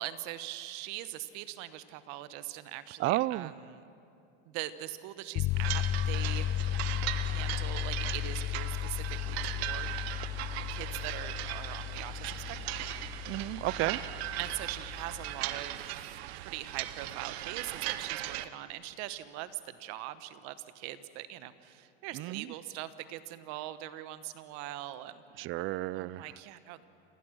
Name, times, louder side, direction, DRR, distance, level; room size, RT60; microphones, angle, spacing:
voice 1, 0.0-3.8 4.5-6.5 7.2-9.9 10.7-12.7 13.0-13.3 13.8-14.0 14.4-25.5 25.9-26.8, right 14 dB, 60° right, 13 dB, 1.2 m, -42 dB
voice 2, 3.0-3.5 13.3-14.0 22.1-22.5 25.4-26.4, right 17 dB, 40° right, 21 dB, 0.5 m, -32 dB
sound 1, 5.4-15.5, left 12 dB, 35° left, 0.4 m, -35 dB
sound 2, 5.5-18.5, right 14 dB, 75° right, 0.9 m, -38 dB
28.5 x 16.5 x 6.3 m, 2.6 s
supercardioid pair, 110°, 32 cm